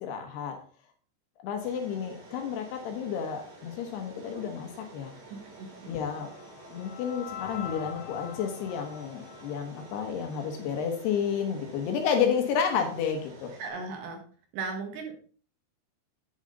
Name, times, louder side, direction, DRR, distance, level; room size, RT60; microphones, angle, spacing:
voice 1, 0.0-0.6 1.4-5.1 5.9-6.3 6.7-13.5, left 7 dB, 70° left, 5 dB, 2.9 m, -31 dB
sound 1, 1.6-13.7, right 2 dB, 40° right, 2.0 m, -50 dB
voice 2, 5.3-5.7 13.6-14.2 14.5-15.2, right 4 dB, 70° right, 3 dB, 3.7 m, -36 dB
sound 2, 5.5-10.7, left 9 dB, 85° left, 3.3 m, -44 dB
8.7 x 7.0 x 3.9 m, 0.43 s
omnidirectional pair, 5.3 m